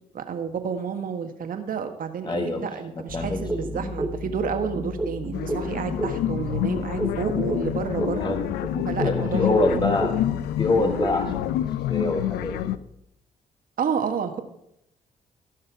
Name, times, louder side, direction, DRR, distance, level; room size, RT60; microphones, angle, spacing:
voice 1, 0.1-8.4 8.8-9.8 13.8-14.4, right 6 dB, 60° right, 7 dB, 1.4 m, -30 dB
voice 2, 2.2-3.4 8.2-8.4 9.0-10.1 10.6-11.5 11.9-12.7, left 2 dB, 30° left, 5 dB, 1.2 m, -25 dB
Bass guitar, 3.1-13.0, left 3 dB, 45° left, 4.0 m, -40 dB
sound 1, 3.5-6.4 6.7-10.4 10.7-11.4, right 2 dB, 15° right, 1.9 m, -31 dB
sound 2, 5.3-12.8, left 13 dB, 85° left, 0.4 m, -27 dB
16.0 x 5.7 x 4.6 m, 0.80 s
supercardioid pair, 60°, 16 cm